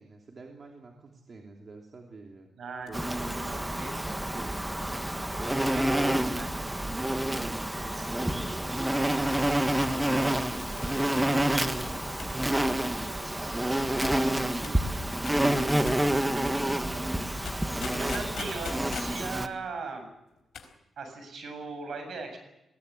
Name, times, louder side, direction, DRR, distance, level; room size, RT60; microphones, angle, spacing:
voice 1, 0.0-2.5 2.8-5.2 7.3-18.7, right 3 dB, 45° right, 1 dB, 2.9 m, -47 dB
voice 2, 2.6-3.9 5.7-6.5 14.0-14.3 18.0-20.1 21.0-22.4, right 4 dB, 70° right, 6 dB, 7.5 m, -39 dB
sound 1, 2.8-6.2 7.0-7.5 7.7-7.8 8.3-8.7 9.8-10.0 10.8-11.4 12.2-13.0 14.0-14.2 14.6-14.9 15.3-15.5 15.9-16.1 17.5-19.2 20.4-20.7 21.0-21.1, left 7 dB, 70° left, 4.6 m, -44 dB
Insect, 2.9-19.5, right 1 dB, 10° right, 1.4 m, -28 dB
20.5 x 17.0 x 9.8 m, 0.91 s
cardioid pair, 95°, 0 cm